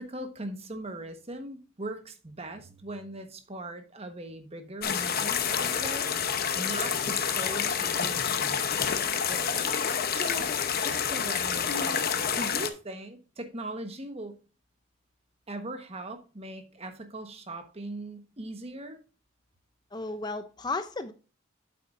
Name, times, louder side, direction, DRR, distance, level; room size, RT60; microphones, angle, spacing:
voice 1, 0.0-8.7 9.3-12.1 12.3-14.4 15.5-19.0, right 1 dB, 30° right, 1.2 m, -40 dB
sound 1, 4.8-12.7, left 7 dB, 45° left, 0.8 m, -28 dB
voice 2, 19.9-21.1, left 3 dB, 20° left, 0.5 m, -34 dB
8.3 x 7.9 x 2.5 m
head